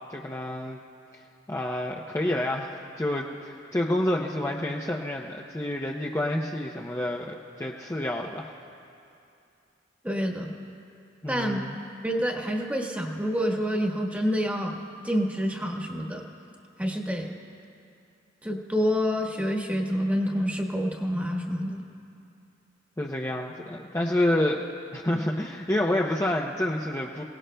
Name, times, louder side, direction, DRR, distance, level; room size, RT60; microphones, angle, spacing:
voice 1, 0.1-0.8 1.5-8.5 11.2-11.8 23.0-24.6 24.9-27.2, left 1 dB, 15° left, -1 dB, 0.6 m, -28 dB
voice 2, 10.0-10.6 11.3-11.6 12.0-14.8 15.0-16.2 16.8-17.3 18.4-21.8, equal, 10° right, 0 dB, 1.3 m, -27 dB
28.5 x 18.0 x 2.2 m, 2.6 s
head